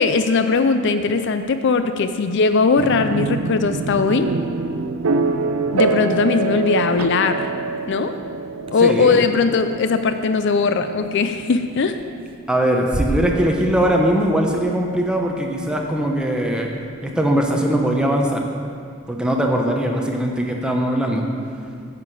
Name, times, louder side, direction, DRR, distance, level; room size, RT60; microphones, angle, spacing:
voice 1, 0.0-4.3 5.7-7.5 7.9-8.2 8.7-12.0, left 4 dB, 55° left, 9 dB, 0.4 m, -19 dB
sound 1, 2.8-16.5, right 4 dB, 80° right, 0.5 m, -27 dB
sound 2, 7.8-7.9 8.7-8.8 9.5-9.6 11.1-11.6 11.9-12.4 12.6-13.9 14.2-14.3 14.5-14.8, right 2 dB, 25° right, 0.5 m, -28 dB
voice 2, 8.8-9.2 12.5-16.7 17.0-18.4 19.1-21.3, equal, 5° right, 0 dB, 0.9 m, -20 dB
9.6 x 5.8 x 8.2 m, 2.3 s
head